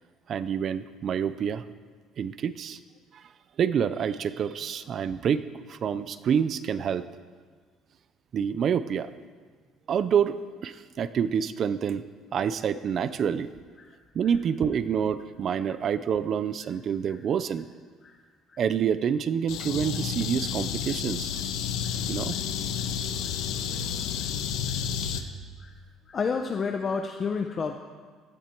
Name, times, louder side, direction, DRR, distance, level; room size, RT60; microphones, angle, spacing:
voice 1, 0.3-1.6 2.2-2.8 3.1-3.2 3.6-7.1 8.3-9.1 9.9-12.0 12.3-13.5 14.1-17.7 18.6-21.5 22.1-22.3, right 7 dB, 35° right, 14 dB, 0.4 m, -27 dB
sound 1, 19.5-25.2, left 8 dB, 70° left, 1.0 m, -31 dB
voice 2, 24.6-25.3 25.6-25.8 26.1-27.7, left 5 dB, 25° left, 5 dB, 0.6 m, -32 dB
16.0 x 13.5 x 4.5 m, 1.5 s
cardioid pair, 170°, 0 cm